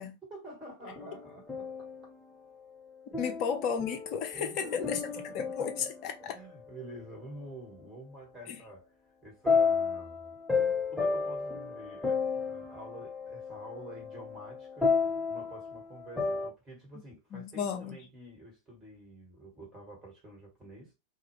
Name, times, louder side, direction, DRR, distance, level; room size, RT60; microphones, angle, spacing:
voice 1, 0.0-1.9 3.2-3.3 4.4-5.7 6.2-8.9 9.2-20.9, right 1 dB, 20° right, 1.5 m, -48 dB
sound 1, 0.8-2.1 3.1-6.3 9.5-16.5, left 5 dB, ahead, 0.8 m, -32 dB
voice 2, 3.2-5.0 5.3-6.4 8.5-8.6 17.3-18.0, left 7 dB, 40° left, 0.5 m, -33 dB
2.4 x 2.4 x 3.0 m
figure-of-eight pair, 90°, 0 cm